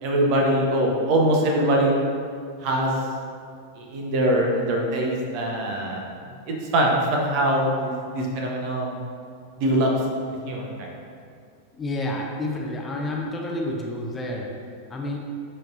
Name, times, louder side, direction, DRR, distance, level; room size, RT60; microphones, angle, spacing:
voice 1, 0.0-2.0 2.6-2.9 3.8-6.0 6.5-9.0 9.6-9.9 10.5-10.9, right 1 dB, 45° right, 0 dB, 1.1 m, -23 dB
voice 2, 11.7-14.5 14.9-15.2, left 1 dB, 15° left, 0 dB, 0.7 m, -29 dB
10.5 x 4.5 x 2.7 m, 2.3 s
figure-of-eight pair, 90°, 0 cm